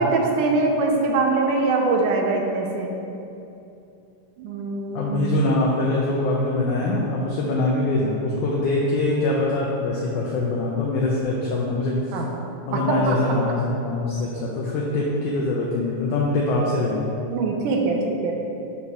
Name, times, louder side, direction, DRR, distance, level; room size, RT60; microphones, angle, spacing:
voice 1, 0.0-2.9 4.4-5.1 12.1-12.4 12.7-13.2 17.3-18.4, right 3 dB, 75° right, 1 dB, 2.1 m, -23 dB
voice 2, 4.9-12.3 12.7-17.2, left 2 dB, 75° left, -3 dB, 1.9 m, -23 dB
5.5 x 4.3 x 6.0 m, 2.7 s
omnidirectional pair, 3.9 m